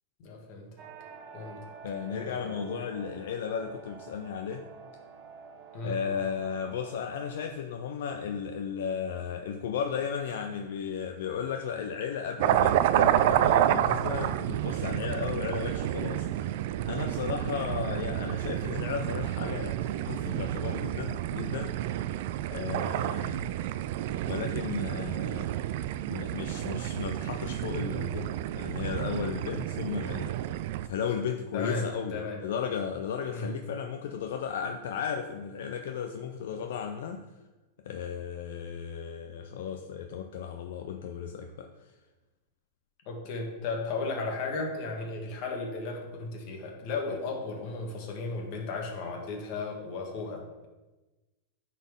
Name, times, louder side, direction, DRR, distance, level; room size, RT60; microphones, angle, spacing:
voice 1, 0.2-0.8 1.3-1.6 2.1-2.7 5.7-6.0 31.5-32.4 33.3-33.5 43.0-50.7, left 3 dB, 50° left, 1 dB, 1.7 m, -35 dB
sound 1, 0.8-7.5, right 6 dB, 40° right, 1.0 m, -48 dB
voice 2, 1.8-4.6 5.8-16.6 16.8-21.7 22.5-23.5 24.2-25.5 26.1-30.4 30.8-37.2 37.9-41.7, left 7 dB, 75° left, 4 dB, 0.5 m, -35 dB
sound 2, 12.4-30.9, right 12 dB, 60° right, 0.3 m, -29 dB
9.9 x 4.2 x 3.7 m, 1.1 s
supercardioid pair, 140°, 0 cm